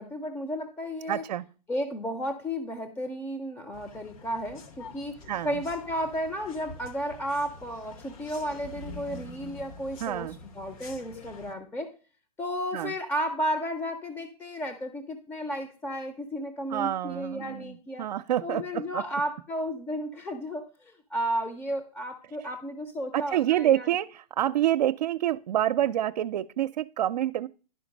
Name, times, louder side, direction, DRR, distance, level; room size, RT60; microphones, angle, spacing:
voice 1, 0.0-1.2 1.7-11.9 12.4-18.1 18.4-23.9, equal, 10° left, 0.6 m, -33 dB
voice 2, 1.1-1.5 5.3-5.6 10.0-10.4 12.7-12.9 16.7-19.0 23.1-27.5, right 12 dB, 85° right, 0.5 m, -27 dB
sound 1, 3.7-11.5, left 3 dB, 55° left, 1.6 m, -46 dB
11.0 x 5.2 x 5.2 m
hypercardioid pair, 150°, 21 cm